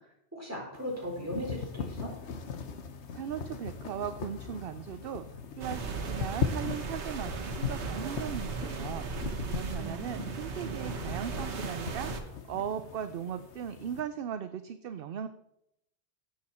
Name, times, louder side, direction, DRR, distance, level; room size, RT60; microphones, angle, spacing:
voice 1, 0.3-2.1 9.8-10.3, equal, 15° right, -4 dB, 4.6 m, -38 dB
sound 1, 0.7-14.0, left 6 dB, 85° left, 1.3 m, -39 dB
voice 2, 3.1-5.3 5.5-15.3, right 9 dB, 60° right, 10 dB, 0.8 m, -38 dB
sound 2, 5.6-12.2, right 4 dB, 90° right, 1.4 m, -37 dB
16.0 x 7.7 x 4.3 m, 0.83 s
omnidirectional pair, 1.1 m